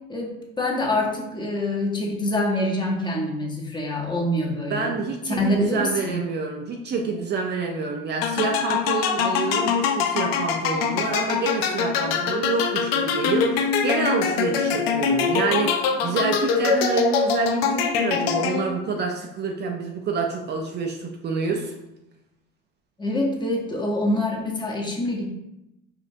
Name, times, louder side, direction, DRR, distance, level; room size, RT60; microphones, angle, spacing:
voice 1, 0.1-4.9 5.3-6.2 23.0-25.3, left 1 dB, 15° left, -1 dB, 0.8 m, -25 dB
voice 2, 4.6-21.7, right 4 dB, 35° right, 2 dB, 0.4 m, -27 dB
sound 1, 8.2-18.9, left 6 dB, 90° left, 0.5 m, -23 dB
5.0 x 2.5 x 2.6 m, 0.89 s
supercardioid pair, 95°, 29 cm